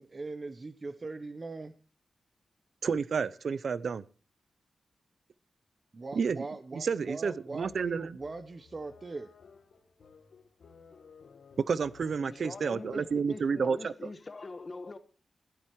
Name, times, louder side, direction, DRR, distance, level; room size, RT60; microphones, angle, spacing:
voice 1, 0.0-1.7 5.9-9.3, right 3 dB, 30° right, 0.8 m, -41 dB
voice 2, 2.8-4.0 6.1-6.4 6.8-8.1 11.6-13.9, right 5 dB, 60° right, 0.6 m, -30 dB
sound 1, 7.0-13.5, left 5 dB, 70° left, 1.9 m, -57 dB
voice 3, 12.2-15.0, left 3 dB, 35° left, 1.4 m, -43 dB
15.0 x 12.0 x 4.7 m
wide cardioid pair, 165°, 0 cm